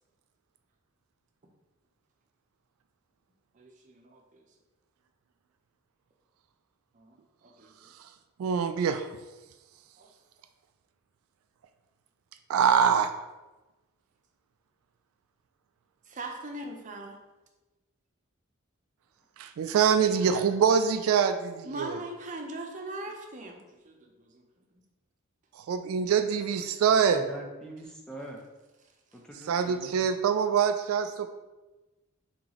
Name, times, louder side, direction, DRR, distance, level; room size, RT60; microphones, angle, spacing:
voice 1, 3.5-4.4 6.9-7.9 10.0-10.1 16.1-17.2 21.6-24.4, right 2 dB, 35° right, 2 dB, 0.6 m, -41 dB
voice 2, 8.4-9.1 12.5-13.1 19.4-22.0 25.6-27.2 29.5-31.3, right 7 dB, 80° right, 8 dB, 0.3 m, -24 dB
voice 3, 27.1-28.4 29.1-30.1, right 1 dB, 5° left, -1 dB, 0.5 m, -44 dB
3.9 x 3.8 x 3.0 m, 1.1 s
head